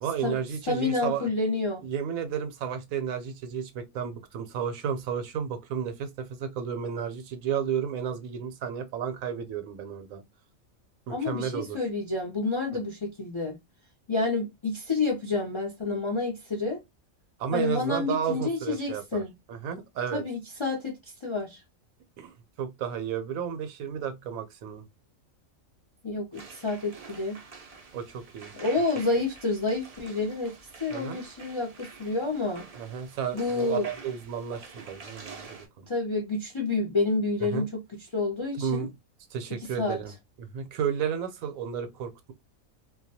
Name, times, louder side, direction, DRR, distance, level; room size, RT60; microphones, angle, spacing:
voice 1, 0.0-1.3 1.8-10.2 11.1-11.8 17.4-19.2 19.5-20.2 22.2-24.8 27.9-28.5 30.9-31.2 32.8-35.9 37.4-37.7 38.5-38.9 39.3-40.1 40.4-42.3, right 7 dB, 80° right, 1.0 m, -32 dB
voice 2, 0.6-1.9 11.1-13.6 14.1-16.8 17.5-19.3 20.1-21.6 26.0-27.4 28.5-30.5 30.8-32.6 33.3-33.9 35.9-37.7 38.1-38.9 39.8-40.0, left 3 dB, 50° left, 0.3 m, -29 dB
sound 1, 26.3-35.7, right 4 dB, 60° right, 0.4 m, -47 dB
2.3 x 2.1 x 2.6 m
omnidirectional pair, 1.4 m